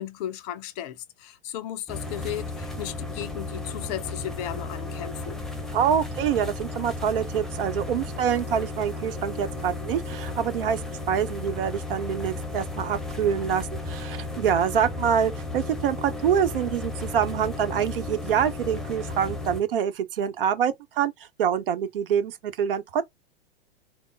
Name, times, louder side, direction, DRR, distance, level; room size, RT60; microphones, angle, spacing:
voice 1, 0.0-5.4, left 11 dB, 40° left, 0.6 m, -35 dB
sound 1, 1.9-19.6, left 2 dB, ahead, 1.0 m, -34 dB
voice 2, 5.7-10.8 11.1-21.1 21.4-23.1, right 8 dB, 60° right, 1.0 m, -26 dB
3.5 x 2.1 x 3.9 m
figure-of-eight pair, 100°, 31 cm